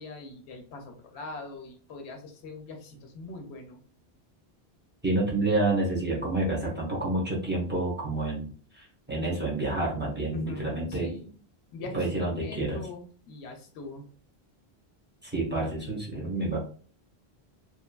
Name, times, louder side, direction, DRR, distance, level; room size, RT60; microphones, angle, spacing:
voice 1, 0.0-3.8 10.3-11.3 11.7-14.1, left 3 dB, 85° left, 3 dB, 0.9 m, -42 dB
voice 2, 5.0-11.1 11.9-12.8 15.2-16.6, right 2 dB, 10° right, -5 dB, 0.9 m, -29 dB
3.0 x 2.2 x 2.3 m, 0.42 s
omnidirectional pair, 1.1 m